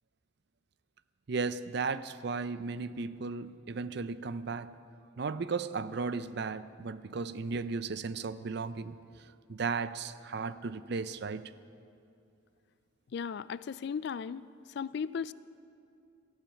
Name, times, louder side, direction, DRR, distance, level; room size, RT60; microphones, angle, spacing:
voice 1, 1.3-4.7 5.2-9.0 9.5-11.4, right 4 dB, 55° right, 0.5 m, -35 dB
voice 2, 13.1-15.3, left 6 dB, 55° left, 0.3 m, -36 dB
17.0 x 14.0 x 5.7 m
head